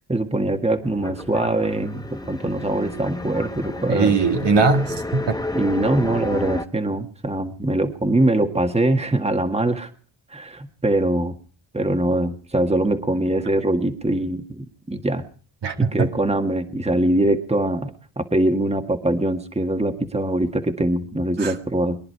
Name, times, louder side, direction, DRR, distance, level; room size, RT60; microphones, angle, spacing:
voice 1, 0.1-4.3 5.5-9.9 10.3-11.3 11.7-15.2 15.8-22.0, right 1 dB, 15° right, 7 dB, 1.7 m, -23 dB
sound 1, 0.8-6.7, left 2 dB, 10° left, 1.1 m, -31 dB
voice 2, 3.9-5.4 15.6-16.1 21.4-21.5, right 4 dB, 65° right, 5 dB, 1.9 m, -20 dB
22.5 x 10.5 x 4.7 m, 0.42 s
cardioid pair, 75°, 44 cm